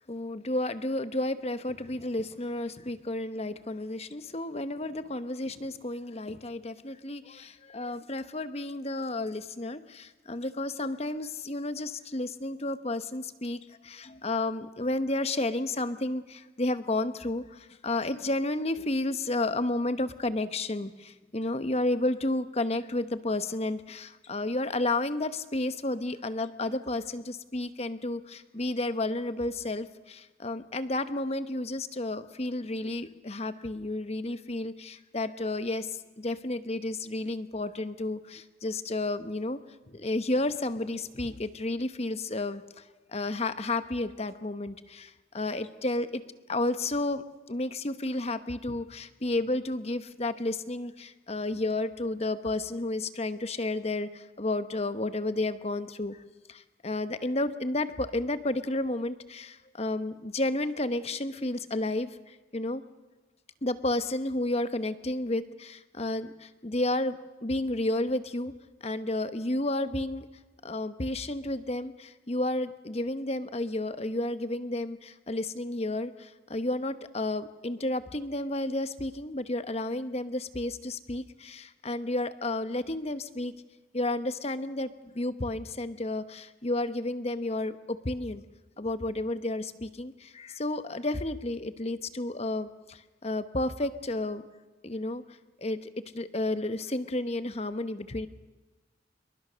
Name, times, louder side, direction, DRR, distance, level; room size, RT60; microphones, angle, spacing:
voice 1, 0.1-39.6 39.9-42.8 43.1-46.2 46.5-56.2 56.5-62.8 63.6-68.5 68.8-70.3 70.6-83.5 83.9-88.4 88.8-94.4 94.8-95.2 95.6-98.3, left 2 dB, 35° left, 11 dB, 1.0 m, -32 dB
27.0 x 23.0 x 6.4 m, 1.2 s
head